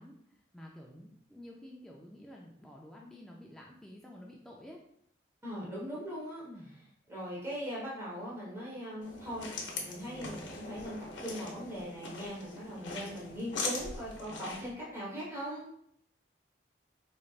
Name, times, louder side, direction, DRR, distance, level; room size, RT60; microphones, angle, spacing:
voice 1, 0.0-4.8 6.5-6.8, left 1 dB, 5° left, -2 dB, 0.3 m, -50 dB
voice 2, 5.4-6.4 7.1-15.7, equal, 15° right, -7 dB, 1.0 m, -40 dB
sound 1, 9.0-14.7, left 3 dB, 70° left, 0.7 m, -41 dB
4.0 x 3.2 x 2.3 m, 0.69 s
head